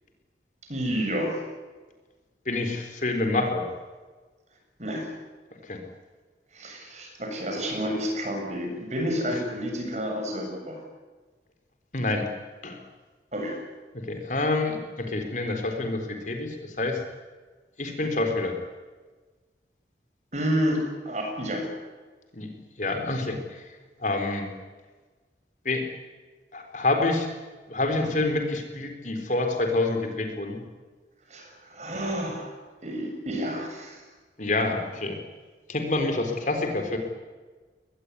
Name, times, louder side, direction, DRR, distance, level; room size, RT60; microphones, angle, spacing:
voice 1, 0.7-1.4 4.8-5.1 6.5-10.8 13.3-13.6 20.3-21.7 31.3-32.6 32.8-34.0, equal, 40° right, 2 dB, 7.3 m, -30 dB
voice 2, 2.5-3.7 5.7-5.8 11.9-12.3 12.6-12.8 14.1-17.0 17.8-18.5 22.3-22.5 22.8-23.6 24.0-24.5 25.6-25.9 26.5-27.3 27.7-30.6 34.4-35.2 35.7-37.0, left 2 dB, 45° left, 5 dB, 4.1 m, -27 dB
22.5 x 20.5 x 9.7 m, 1.3 s
head